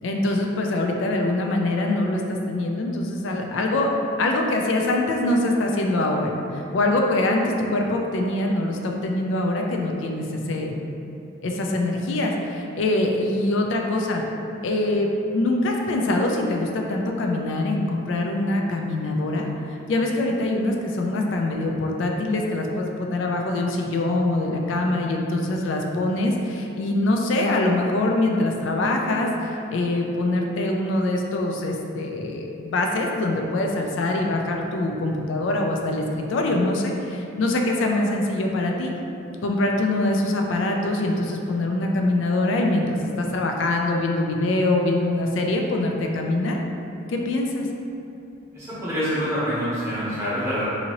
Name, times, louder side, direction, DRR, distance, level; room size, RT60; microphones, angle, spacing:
voice 1, 0.0-3.9 4.2-10.7 11.4-14.2 14.6-19.5 19.9-38.9 39.4-46.6 47.1-47.7, left 2 dB, 65° left, 1 dB, 0.3 m, -24 dB
voice 2, 48.5-50.6, equal, 10° right, -11 dB, 0.9 m, -26 dB
2.7 x 2.7 x 2.8 m, 2.7 s
head